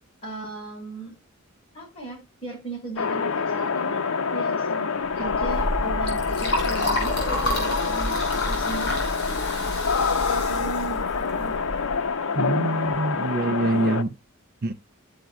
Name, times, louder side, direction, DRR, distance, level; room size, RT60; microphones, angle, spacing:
voice 1, 0.2-1.2 1.7-9.5 10.3-11.6 13.5-14.0, right 3 dB, 30° left, 6.0 m, -37 dB
sound 1, 3.0-14.0, left 5 dB, 80° left, 0.7 m, -26 dB
Liquid, 5.2-11.9, left 1 dB, 55° left, 5.9 m, -29 dB
voice 2, 12.4-14.1 14.6-14.7, right 2 dB, 50° right, 0.5 m, -25 dB
14.0 x 5.1 x 2.2 m
head